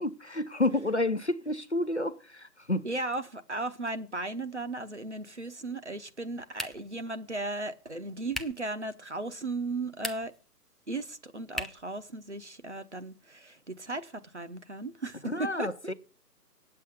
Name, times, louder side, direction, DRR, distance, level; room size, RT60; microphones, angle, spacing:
voice 1, 0.0-2.8 15.3-15.9, left 2 dB, 45° left, 0.7 m, -30 dB
voice 2, 2.8-10.3 10.9-15.9, right 2 dB, 45° right, 0.9 m, -36 dB
sound 1, 6.5-7.0 8.3-8.7 9.9-10.5 11.5-11.9, equal, ahead, 0.5 m, -38 dB
8.9 x 7.8 x 8.2 m
figure-of-eight pair, 170°, 49 cm